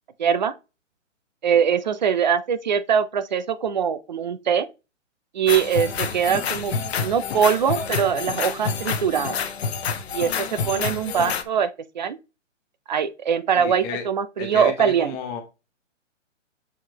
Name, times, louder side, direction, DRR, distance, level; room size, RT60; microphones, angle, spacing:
voice 1, 0.2-0.5 1.4-4.7 5.3-9.4 10.1-12.2 12.9-15.2, right 7 dB, 35° right, 0.5 m, -22 dB
sound 1, 5.5-11.4, left 6 dB, 55° left, 1.1 m, -28 dB
voice 2, 13.6-14.0 14.4-15.4, left 5 dB, 10° left, 0.6 m, -32 dB
7.3 x 4.7 x 2.9 m
hypercardioid pair, 150°, 38 cm